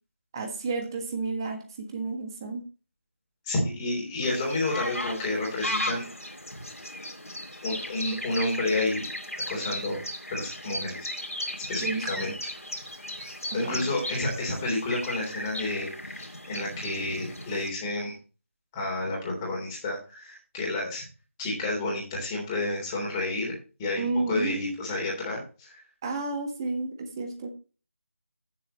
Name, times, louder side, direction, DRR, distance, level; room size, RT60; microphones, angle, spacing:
voice 1, 0.3-2.6 11.8-12.1 13.5-13.9 24.0-24.8 26.0-27.5, right 3 dB, 15° right, 5 dB, 1.3 m, -31 dB
voice 2, 3.4-6.1 7.6-9.1 9.5-10.0 10.3-11.1 11.7-12.3 13.5-18.2 18.7-21.0 21.4-25.8, left 2 dB, 10° left, -3 dB, 3.4 m, -30 dB
sound 1, 4.2-17.7, left 1 dB, 85° left, 2.5 m, -36 dB
14.5 x 7.0 x 3.0 m, 0.35 s
figure-of-eight pair, 165°, 8 cm